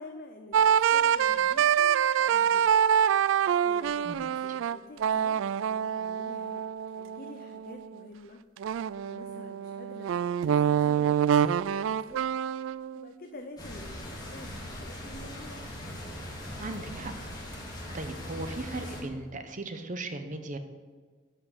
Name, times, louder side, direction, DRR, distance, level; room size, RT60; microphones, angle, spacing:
voice 1, 0.0-2.8 3.3-8.4 8.7-12.2 12.6-15.6, left 2 dB, 50° left, 4 dB, 0.7 m, -48 dB
sound 1, 0.5-7.9 8.6-13.1, right 8 dB, 85° right, 0.3 m, -26 dB
sound 2, 13.6-19.0, left 1 dB, 20° left, 2.6 m, -40 dB
voice 2, 16.6-17.1 17.9-20.6, right 2 dB, 40° right, 8 dB, 0.9 m, -37 dB
11.0 x 5.8 x 8.1 m, 1.5 s
head